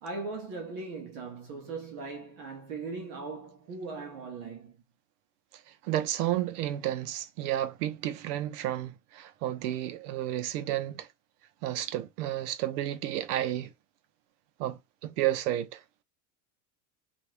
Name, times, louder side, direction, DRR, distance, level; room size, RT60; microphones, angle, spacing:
voice 1, 0.0-4.7, right 4 dB, 35° right, 0.7 m, -39 dB
voice 2, 5.8-11.1 11.6-13.7 14.6-15.8, right 13 dB, 70° right, 0.7 m, -31 dB
2.8 x 2.6 x 3.1 m
supercardioid pair, 170°, 47 cm